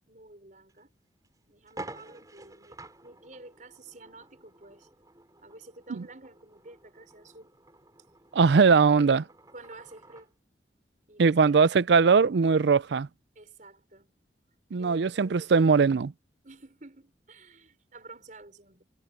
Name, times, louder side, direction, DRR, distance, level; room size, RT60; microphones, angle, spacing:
voice 1, 0.1-0.9 1.5-4.9 5.4-7.5 9.0-9.3 9.5-10.3 11.1-11.5 13.4-14.1 14.8-15.5 16.4-18.8, right 2 dB, 45° right, 5.2 m, -50 dB
sound 1, 0.7-0.8 1.2-1.3 1.7-10.3, right 2 dB, 20° right, 4.8 m, -49 dB
voice 2, 8.3-9.2 11.2-13.1 14.7-16.1, right 5 dB, 70° right, 0.4 m, -20 dB
head